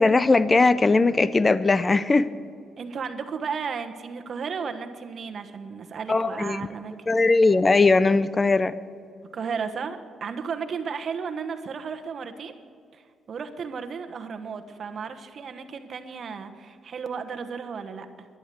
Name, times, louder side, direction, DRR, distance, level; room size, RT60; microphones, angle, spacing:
voice 1, 0.0-2.3 6.1-6.6 7.1-8.7, left 3 dB, 25° left, 16 dB, 0.5 m, -19 dB
voice 2, 2.8-6.9 9.3-12.6 12.9-18.3, right 6 dB, 50° right, 7 dB, 1.2 m, -34 dB
11.5 x 11.5 x 7.8 m, 2.3 s
cardioid pair, 90°, 0 cm